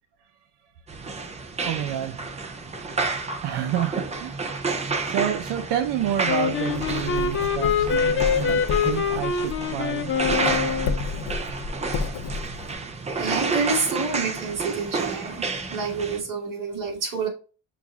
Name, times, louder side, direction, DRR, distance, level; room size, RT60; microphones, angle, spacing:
sound 1, 0.9-16.2, right 4 dB, 20° right, 0.3 m, -30 dB
voice 1, 1.6-3.0 3.4-4.5 5.0-10.1, right 10 dB, 80° right, 0.6 m, -29 dB
Wind instrument woodwind instrument, 6.3-11.0, left 6 dB, 30° left, 0.6 m, -24 dB
Writing, 6.7-12.7, left 4 dB, 85° left, 0.7 m, -32 dB
voice 2, 13.2-17.3, right 4 dB, 50° right, 1.6 m, -28 dB
5.9 x 2.4 x 3.4 m
cardioid pair, 165°, 42 cm